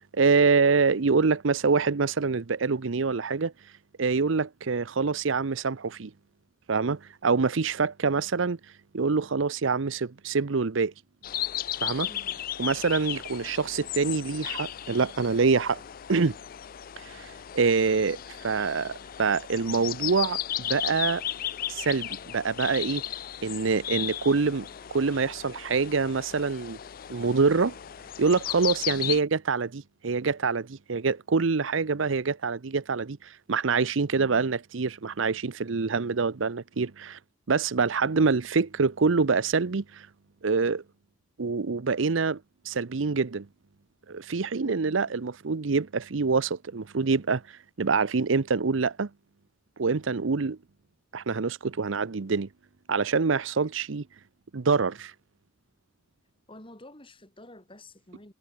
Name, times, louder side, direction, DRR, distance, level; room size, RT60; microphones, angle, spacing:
voice 1, 0.1-3.5 4.0-6.1 6.7-8.6 8.9-10.9 11.8-12.1 12.6-15.8 16.1-16.4 17.1-21.2 21.7-23.0 23.4-26.8 27.1-27.7 28.2-37.2 37.5-40.1 40.4-40.8 41.4-42.4 42.6-43.5 44.1-47.4 47.8-49.1 49.8-50.6 51.1-52.5 52.9-54.0 54.5-55.1, right 4 dB, 75° right, 0.7 m, -25 dB
sound 1, 11.2-29.2, left 12 dB, 45° left, 0.4 m, -35 dB
voice 2, 12.1-12.4 28.9-29.2 34.1-34.5 44.6-45.2 56.5-58.3, left 1 dB, 25° left, 5.3 m, -50 dB
head